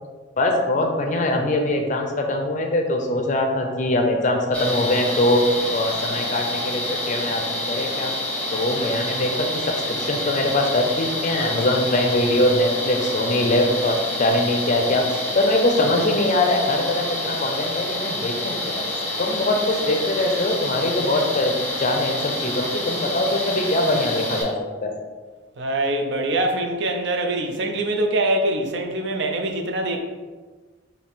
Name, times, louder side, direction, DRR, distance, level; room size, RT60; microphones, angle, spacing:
voice 1, 0.4-8.1 8.5-15.0 15.3-18.8 19.2-24.5 24.8-25.0, left 1 dB, 35° left, 3 dB, 0.5 m, -22 dB
sound 1, 4.5-24.4, left 1 dB, 5° left, 0.7 m, -28 dB
voice 2, 25.6-30.0, right 1 dB, 60° right, 3 dB, 0.5 m, -24 dB
4.1 x 2.7 x 3.5 m, 1.4 s
head